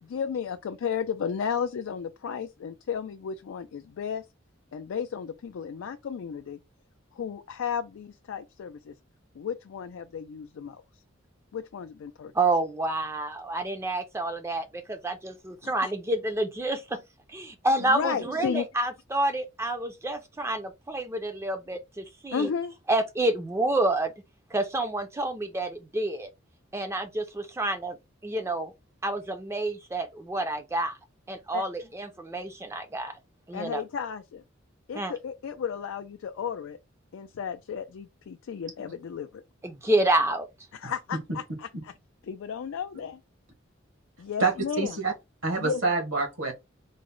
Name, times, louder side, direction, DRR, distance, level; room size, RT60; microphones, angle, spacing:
voice 1, 0.0-4.3 4.7-6.6 7.1-9.0 9.3-10.8 11.5-12.3 15.6-15.9 17.8-18.7 22.3-22.8 31.5-31.6 33.5-34.4 34.9-36.8 37.1-39.4 40.7-41.9 42.3-43.2 44.2-45.0 45.6-45.8, left 7 dB, 75° left, 0.4 m, -33 dB
voice 2, 12.3-17.0 17.3-22.5 22.9-24.1 24.5-26.3 26.7-28.0 28.2-28.7 29.0-31.0 31.3-33.2 33.5-33.8 34.9-35.1 39.6-40.5, right 2 dB, 15° right, 0.4 m, -28 dB
voice 3, 44.4-45.1 45.4-46.5, right 3 dB, 75° right, 1.2 m, -27 dB
3.9 x 2.0 x 3.6 m
head